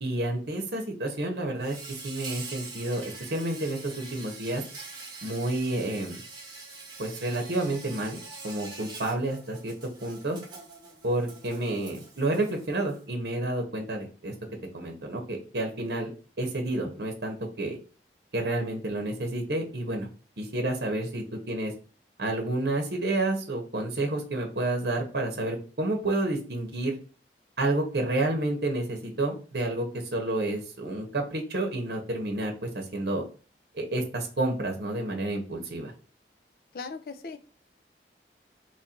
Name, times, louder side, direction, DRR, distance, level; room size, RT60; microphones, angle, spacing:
voice 1, 0.0-1.8 2.0-4.6 5.2-6.2 7.0-8.2 8.4-9.7 10.0-10.4 11.0-14.3 14.7-16.1 16.4-17.8 18.3-20.1 20.4-21.7 22.2-27.0 27.6-29.9 30.1-33.2 33.7-35.9, right 2 dB, 65° right, 3 dB, 0.9 m, -30 dB
Insect, 1.6-13.0, right 3 dB, 25° right, 1.0 m, -44 dB
voice 2, 36.7-37.4, left 4 dB, 55° left, 10 dB, 0.4 m, -38 dB
3.1 x 2.6 x 4.4 m, 0.37 s
head